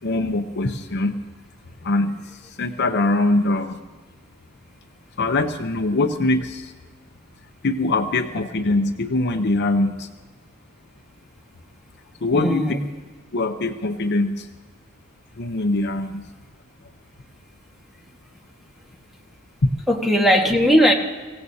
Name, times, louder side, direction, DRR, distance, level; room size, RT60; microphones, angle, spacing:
voice 1, 0.0-1.2 1.8-3.8 5.2-6.7 7.6-10.1 12.2-12.8 13.3-14.5 15.4-16.3, left 2 dB, 55° left, 7 dB, 0.8 m, -22 dB
voice 2, 12.3-12.8 19.9-20.9, equal, ahead, 0 dB, 1.6 m, -18 dB
24.5 x 17.0 x 2.8 m, 1.4 s
head